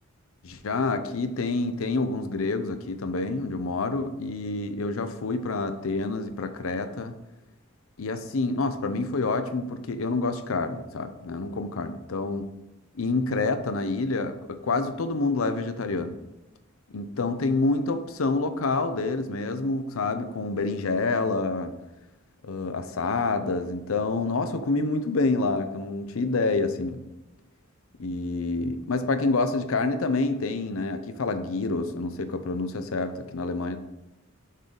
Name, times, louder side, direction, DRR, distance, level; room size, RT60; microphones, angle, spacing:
voice 1, 0.4-7.1 8.0-12.5 12.9-16.2 16.9-21.7 22.4-27.0 28.0-33.8, left 3 dB, 85° left, 9 dB, 0.6 m, -27 dB
6.4 x 3.9 x 5.2 m, 0.97 s
head